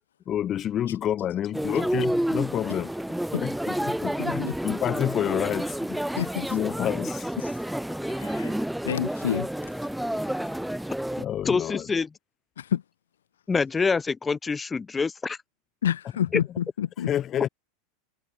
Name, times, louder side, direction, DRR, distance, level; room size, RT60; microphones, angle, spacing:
voice 1, 0.3-2.9 3.4-7.3 10.3-10.4 11.2-11.9 17.1-17.5, left 10 dB, 35° left, 1.3 m, -29 dB
sound 1, 1.5-11.3, right 1 dB, 5° right, 2.8 m, -30 dB
voice 2, 4.2-4.6 6.2-6.6 7.4-7.5 8.1-8.6 8.9-9.5 12.6-12.8 15.8-17.1, left 10 dB, 80° left, 0.6 m, -29 dB
voice 3, 11.4-12.1 13.5-15.4, left 4 dB, 20° left, 2.5 m, -26 dB
hypercardioid pair, 95°, 0 cm